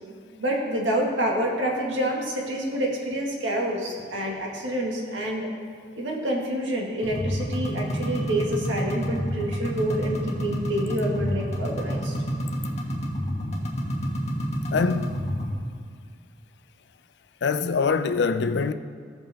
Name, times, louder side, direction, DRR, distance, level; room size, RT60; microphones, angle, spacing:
voice 1, 0.4-5.5 6.0-12.1, right 1 dB, 85° right, 1.7 m, -27 dB
sound 1, 7.0-15.5, equal, 35° left, 1.3 m, -29 dB
voice 2, 14.7-15.4 17.4-18.7, left 5 dB, 65° left, 0.4 m, -24 dB
15.5 x 5.3 x 3.5 m
head